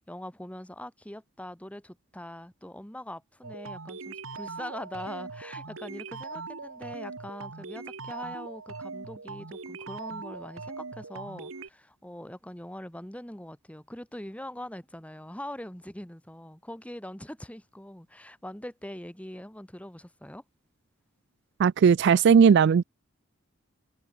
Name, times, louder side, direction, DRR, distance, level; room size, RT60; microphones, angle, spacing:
voice 1, 0.0-20.4 22.6-22.7, left 1 dB, 5° left, 1.8 m, -42 dB
sound 1, 3.4-11.7, right 4 dB, 90° right, 1.6 m, -40 dB
voice 2, 21.6-22.8, right 6 dB, 60° right, 0.3 m, -18 dB
head